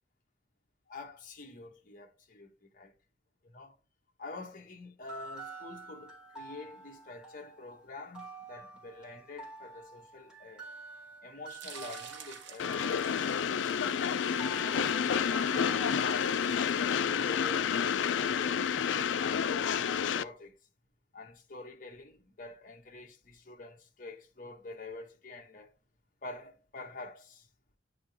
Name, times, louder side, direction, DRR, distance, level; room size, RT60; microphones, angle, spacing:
voice 1, 0.9-2.9 3.4-3.8 4.2-10.7 11.2-14.0 14.6-20.5 21.1-25.7 26.2-27.5, left 2 dB, 45° left, 1.1 m, -47 dB
sound 1, 5.0-16.4, right 2 dB, 5° right, 2.1 m, -48 dB
sound 2, 11.5-17.5, right 6 dB, 80° right, 1.0 m, -51 dB
Train, 12.6-20.2, left 7 dB, 85° left, 0.4 m, -29 dB
9.0 x 3.7 x 3.5 m
head